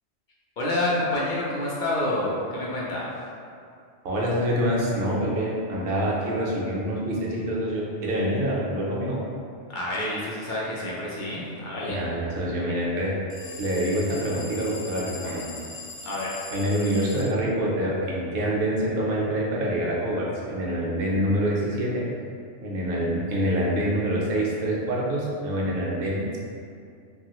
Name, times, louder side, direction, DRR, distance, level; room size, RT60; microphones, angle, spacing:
voice 1, 0.6-3.1 9.7-12.0 16.0-16.4, left 1 dB, 60° left, -6 dB, 0.5 m, -28 dB
voice 2, 4.0-9.2 11.9-13.1 13.6-15.5 16.5-22.1 22.6-26.4, equal, 60° right, -4 dB, 0.8 m, -26 dB
sound 1, 13.3-17.3, left 4 dB, 85° left, 0.9 m, -40 dB
2.9 x 2.4 x 2.9 m, 2.4 s
omnidirectional pair, 1.2 m